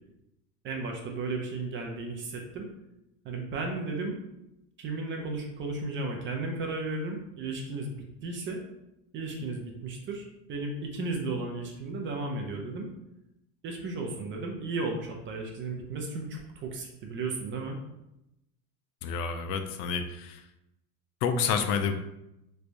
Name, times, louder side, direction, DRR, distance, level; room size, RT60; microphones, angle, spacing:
voice 1, 0.6-2.7 3.2-4.2 4.8-7.9 8.2-8.6 9.1-12.9 13.6-17.8, right 3 dB, 25° right, 2 dB, 0.4 m, -34 dB
voice 2, 19.0-20.4 21.2-21.9, left 6 dB, 75° left, 7 dB, 0.6 m, -29 dB
3.3 x 3.2 x 2.5 m, 0.87 s
supercardioid pair, 125°, 46 cm